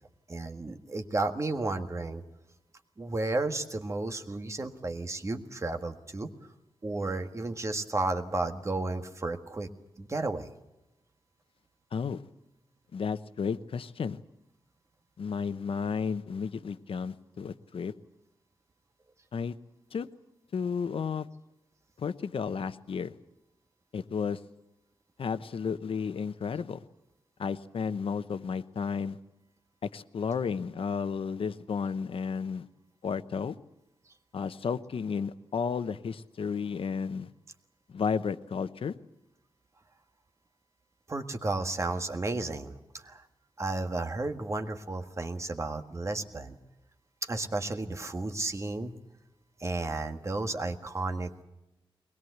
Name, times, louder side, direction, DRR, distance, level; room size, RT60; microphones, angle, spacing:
voice 1, 0.3-2.2 3.0-6.3 6.8-9.7 10.0-10.5 41.1-43.2 43.6-46.6 47.2-48.9 49.6-51.4, right 2 dB, 30° right, 6 dB, 1.7 m, -33 dB
voice 2, 11.9-12.2 12.9-14.2 15.2-17.9 19.3-19.5 19.9-20.1 20.5-21.3 22.0-23.1 23.9-24.4 25.2-26.8 27.4-29.2 29.8-32.7 33.0-33.6 34.3-37.3 37.9-38.9, left 6 dB, 70° left, 13 dB, 0.9 m, -32 dB
22.5 x 21.0 x 8.0 m, 0.94 s
wide cardioid pair, 165°, 10 cm